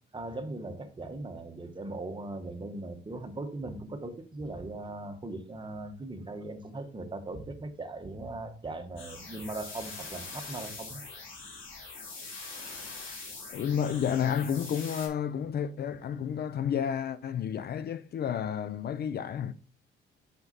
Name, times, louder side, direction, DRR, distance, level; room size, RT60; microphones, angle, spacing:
voice 1, 0.1-11.0, right 2 dB, 25° right, 1.2 m, -39 dB
sound 1, 9.0-15.1, left 3 dB, 80° left, 3.0 m, -43 dB
voice 2, 13.5-19.5, left 8 dB, 55° left, 0.5 m, -31 dB
5.7 x 5.4 x 4.0 m
cardioid pair, 90°, 20 cm